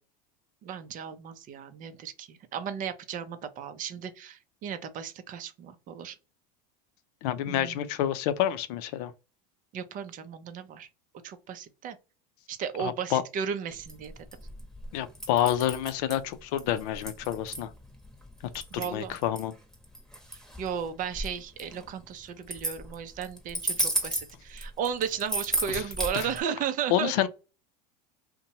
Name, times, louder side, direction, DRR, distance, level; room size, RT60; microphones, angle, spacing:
voice 1, 0.6-6.2 7.5-7.8 9.7-10.9 11.2-12.0 12.5-14.1 18.7-19.1 20.3-27.1, right 7 dB, 40° right, 0.5 m, -35 dB
voice 2, 7.2-9.1 12.8-13.2 14.9-17.7 18.8-19.5 25.7-25.8 26.1-26.3 26.9-27.3, left 11 dB, 70° left, 0.5 m, -28 dB
sound 1, 13.8-26.4, right 1 dB, ahead, 1.0 m, -34 dB
2.6 x 2.2 x 2.8 m
supercardioid pair, 105°, 21 cm